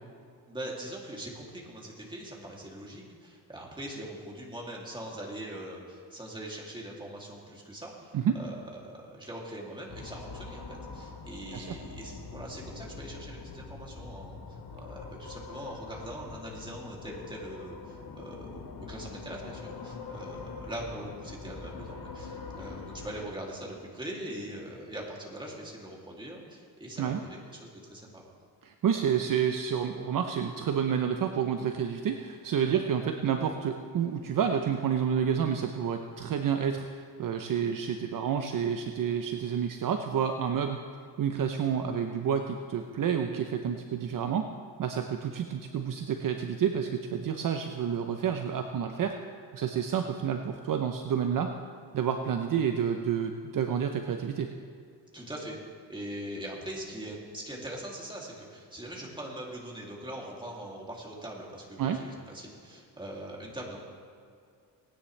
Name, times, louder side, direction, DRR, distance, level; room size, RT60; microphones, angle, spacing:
voice 1, 0.5-28.2 55.1-55.6 55.9-63.8, right 1 dB, 10° right, -3 dB, 2.7 m, -42 dB
sound 1, 9.9-23.3, left 4 dB, 60° left, 1.7 m, -43 dB
voice 2, 28.6-40.8 41.2-44.5 44.8-49.1 49.5-51.5 51.9-54.5 61.8-62.0, right 8 dB, 50° right, 5 dB, 0.8 m, -29 dB
18.5 x 10.0 x 3.3 m, 2.3 s
cardioid pair, 100°, 41 cm